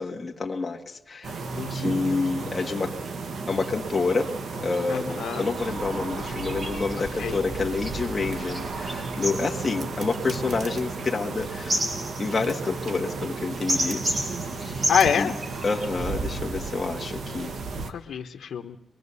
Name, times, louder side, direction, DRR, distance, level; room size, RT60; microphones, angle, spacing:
voice 1, 0.0-1.3 1.7-3.0 3.5-11.8 12.2-14.0 14.6-14.9 15.2-15.3 15.6-17.5, left 4 dB, 25° left, 0 dB, 1.7 m, -28 dB
sound 1, 1.2-17.9, right 4 dB, 65° right, 1.6 m, -33 dB
voice 2, 1.6-2.2 4.9-5.5 7.2-7.4 14.9-15.4 17.7-18.8, left 7 dB, 75° left, 1 dB, 1.2 m, -27 dB
sound 2, 4.1-4.2 4.7-4.9 5.3-15.9, right 1 dB, 35° right, 5.4 m, -33 dB
23.5 x 23.0 x 7.0 m, 0.84 s
wide cardioid pair, 150°, 0 cm